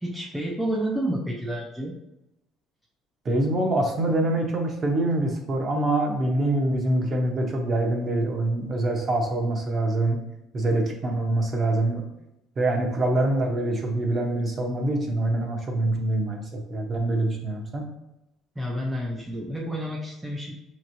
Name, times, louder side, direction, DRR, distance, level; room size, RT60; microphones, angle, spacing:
voice 1, 0.0-2.0 18.6-20.5, equal, 5° right, -2 dB, 0.4 m, -30 dB
voice 2, 3.2-10.2 10.5-12.1 12.6-17.9, right 1 dB, 30° right, 2 dB, 0.8 m, -25 dB
6.0 x 3.0 x 2.6 m, 0.88 s
cardioid pair, 155°, 0 cm